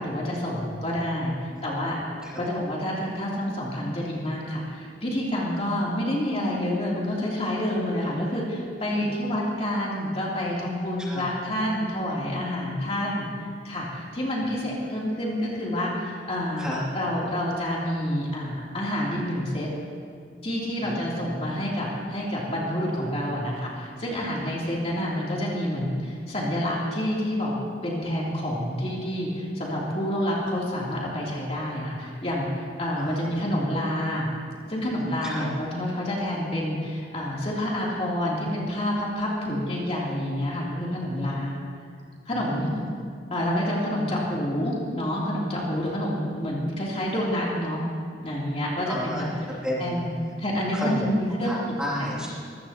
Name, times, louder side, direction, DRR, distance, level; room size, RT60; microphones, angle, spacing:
voice 1, 0.0-1.3 1.6-2.0 2.4-13.3 13.6-19.7 20.4-27.5 27.8-34.3 34.7-41.6 42.2-42.7 43.3-47.8 48.2-49.3 49.8-50.1 50.4-51.6 52.0-52.1, equal, 35° left, -5 dB, 3.1 m, -28 dB
voice 2, 33.0-33.3 35.2-35.4 42.3-42.8 48.8-50.1 50.7-51.1 51.4-52.3, equal, 5° right, -7 dB, 2.6 m, -32 dB
21.5 x 15.5 x 2.9 m, 2.2 s
head